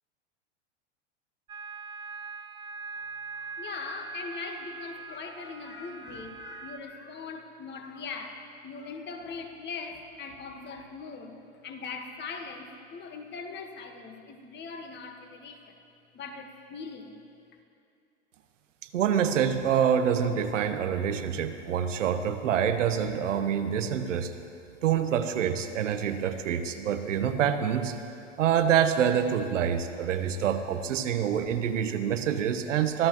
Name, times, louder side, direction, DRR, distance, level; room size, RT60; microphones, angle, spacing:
sound 1, 1.5-6.8, right 5 dB, 15° right, 0.3 m, -42 dB
voice 1, 3.3-15.7 16.1-17.2, left 4 dB, 30° left, 5 dB, 1.5 m, -41 dB
voice 2, 18.9-24.3 24.8-28.0 28.4-33.1, right 8 dB, 85° right, 8 dB, 1.1 m, -26 dB
23.0 x 13.5 x 3.1 m, 2.5 s
hypercardioid pair, 115°, 36 cm